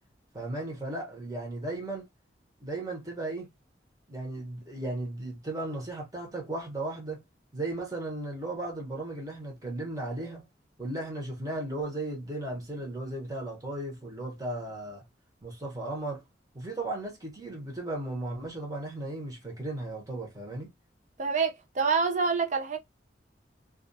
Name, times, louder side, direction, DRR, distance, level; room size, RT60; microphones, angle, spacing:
voice 1, 0.3-2.1 2.6-3.5 4.1-7.2 7.5-10.5 10.8-15.0 15.4-16.2 16.5-20.7, right 2 dB, 20° right, 1.0 m, -36 dB
voice 2, 21.2-22.8, right 5 dB, 45° right, 0.5 m, -27 dB
2.4 x 2.4 x 2.6 m
head